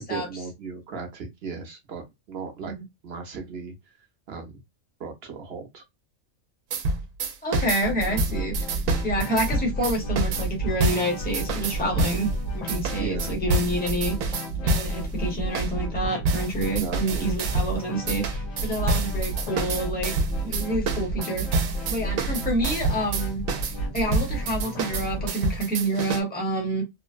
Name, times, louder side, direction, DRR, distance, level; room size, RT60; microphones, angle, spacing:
voice 1, 0.1-2.7 3.0-3.9 4.3-4.6 5.0-5.8 13.0-13.3 16.6-17.3 18.7-19.0, right 5 dB, 55° right, 0.9 m, -37 dB
sound 1, 6.7-12.3 12.7-15.0 15.5-15.7 16.2-17.8 18.1-26.2, right 2 dB, 80° right, 1.0 m, -28 dB
voice 2, 7.4-8.5 9.0-14.1 14.6-20.1 20.4-23.4 23.8-26.8, right 1 dB, 10° left, 0.9 m, -28 dB
sound 2, 7.8-25.3, right 2 dB, 70° left, 1.1 m, -31 dB
3.1 x 2.0 x 2.4 m
omnidirectional pair, 1.4 m